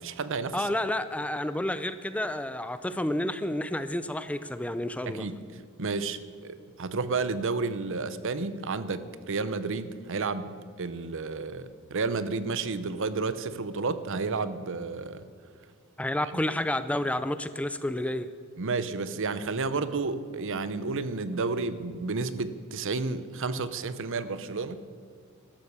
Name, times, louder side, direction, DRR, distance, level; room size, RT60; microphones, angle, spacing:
voice 1, 0.0-0.7 5.1-15.2 16.4-16.5 18.6-24.8, right 4 dB, 60° right, 14 dB, 0.8 m, -31 dB
voice 2, 0.5-5.3 16.0-18.3, left 1 dB, 5° left, 13 dB, 0.4 m, -30 dB
13.0 x 12.5 x 6.8 m, 2.2 s
head